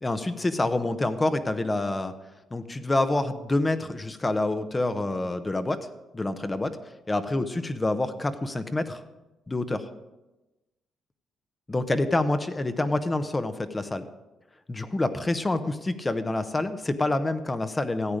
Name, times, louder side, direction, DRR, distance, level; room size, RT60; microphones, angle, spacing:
voice 1, 0.0-2.1 2.5-5.8 6.1-6.7 7.1-9.0 9.5-9.8 11.7-14.0 14.7-18.2, left 2 dB, 20° left, 10 dB, 0.9 m, -27 dB
14.0 x 8.6 x 5.2 m, 1.1 s
cardioid pair, 90°, 0 cm